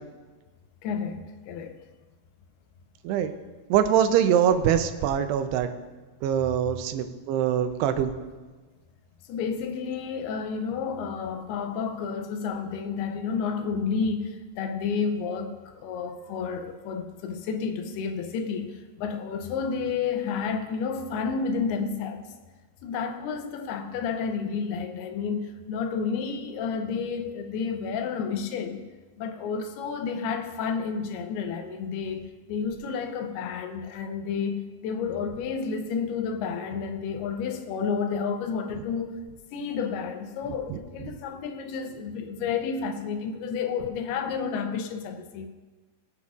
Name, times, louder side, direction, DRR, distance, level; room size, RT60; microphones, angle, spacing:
voice 1, 0.8-1.8 9.3-22.2 22.8-28.9 29.2-39.2 39.5-45.5, left 5 dB, 80° left, 2.6 m, -31 dB
voice 2, 3.7-5.7 6.2-8.1 40.7-40.8, right 9 dB, 85° right, 2.7 m, -23 dB
21.0 x 8.3 x 2.4 m
omnidirectional pair, 4.7 m